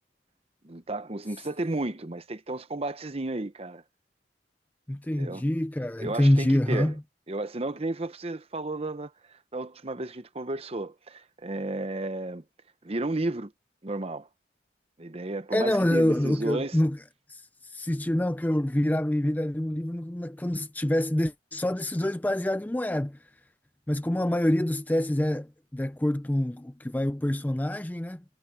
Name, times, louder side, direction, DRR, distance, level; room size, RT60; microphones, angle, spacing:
voice 1, 0.6-3.8 5.2-5.4 6.0-6.9 7.3-12.4 12.8-13.5 13.8-14.3 15.0-16.8, right 2 dB, 30° right, 0.9 m, -33 dB
voice 2, 4.9-7.0 15.5-17.0 17.3-23.2 23.9-28.2, left 1 dB, 10° left, 0.4 m, -26 dB
head